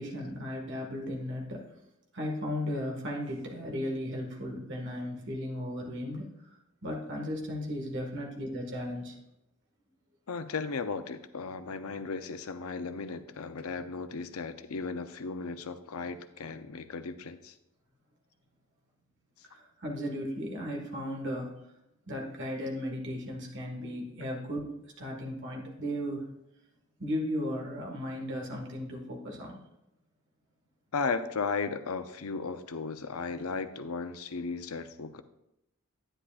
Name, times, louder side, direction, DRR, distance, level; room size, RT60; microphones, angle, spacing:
voice 1, 0.0-1.6 2.1-6.6 6.8-9.2 19.5-21.5 22.1-26.3 27.0-29.6, equal, 55° right, 0 dB, 1.7 m, -36 dB
voice 2, 10.3-17.5 30.9-35.2, left 4 dB, 80° left, 10 dB, 0.6 m, -35 dB
10.0 x 9.9 x 2.5 m, 0.87 s
head